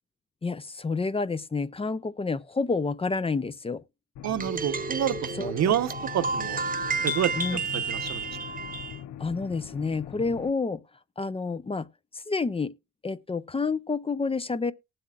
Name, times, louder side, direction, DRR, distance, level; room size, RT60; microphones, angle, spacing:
voice 1, 0.4-3.8 5.4-5.5 7.4-7.6 9.2-10.8 11.2-11.9 12.1-12.7 13.0-14.7, left 4 dB, 20° left, 0.5 m, -29 dB
sound 1, 4.1-10.5, left 11 dB, 75° left, 0.5 m, -41 dB
sound 2, 4.2-9.0, right 4 dB, 30° right, 1.0 m, -31 dB
voice 2, 4.2-6.6 7.0-7.6 7.9-8.4, right 10 dB, 60° right, 1.0 m, -28 dB
19.0 x 7.8 x 2.3 m
cardioid pair, 90°, 30 cm